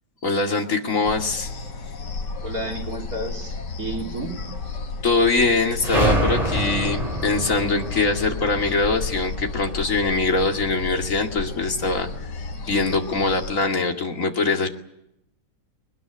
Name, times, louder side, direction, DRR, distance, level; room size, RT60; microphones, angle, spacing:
voice 1, 0.2-1.5 5.0-12.1 12.6-14.7, left 3 dB, 50° left, 2 dB, 2.8 m, -22 dB
sound 1, 1.0-13.5, left 4 dB, 85° left, 2.4 m, -33 dB
voice 2, 2.4-4.6, right 2 dB, 60° right, 1 dB, 3.6 m, -32 dB
sound 2, 5.8-10.3, right 1 dB, 20° right, 3.8 m, -26 dB
22.0 x 20.0 x 9.8 m, 0.80 s
omnidirectional pair, 1.8 m